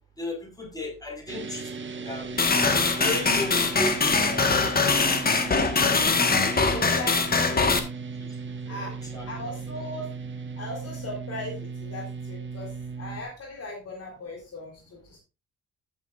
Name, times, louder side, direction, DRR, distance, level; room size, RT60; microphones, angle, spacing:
voice 1, 0.2-1.7 2.0-2.4 2.8-4.5 4.9-5.0 6.4-7.0 8.7-9.3, left 2 dB, 10° left, 0 dB, 5.5 m, -35 dB
sound 1, 1.3-13.2, right 5 dB, 40° right, 1.5 m, -36 dB
sound 2, 2.4-7.8, left 4 dB, 30° left, 1.6 m, -22 dB
voice 2, 6.7-7.8 8.7-9.0 9.3-10.1 10.6-12.7 13.0-15.2, left 2 dB, 55° left, -1 dB, 3.8 m, -38 dB
14.0 x 7.6 x 2.6 m, 0.30 s
cardioid pair, 90°, 30 cm